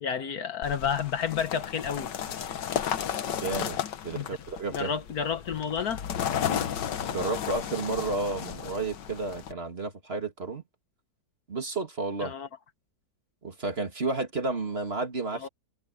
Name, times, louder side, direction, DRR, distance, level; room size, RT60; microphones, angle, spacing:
voice 1, 0.0-2.1 4.1-4.3 4.7-6.0 12.2-12.5 15.3-15.5, left 7 dB, 60° left, 1.5 m, -30 dB
sound 1, 0.6-9.5, left 9 dB, 85° left, 1.7 m, -33 dB
voice 2, 3.4-3.8 4.0-4.9 7.1-10.6 11.5-12.3 13.4-15.5, right 3 dB, 35° right, 2.4 m, -31 dB
omnidirectional pair, 1.8 m